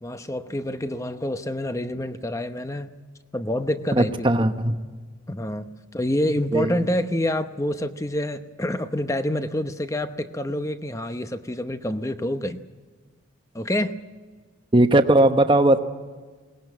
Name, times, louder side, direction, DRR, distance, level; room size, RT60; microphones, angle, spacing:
voice 1, 0.0-3.0 3.3-4.5 5.3-12.6 13.5-13.9, left 1 dB, 15° left, 10 dB, 0.8 m, -27 dB
voice 2, 3.9-4.8 6.5-6.8 14.7-15.8, right 1 dB, 25° right, 8 dB, 1.0 m, -18 dB
21.5 x 19.0 x 9.4 m, 1.4 s
head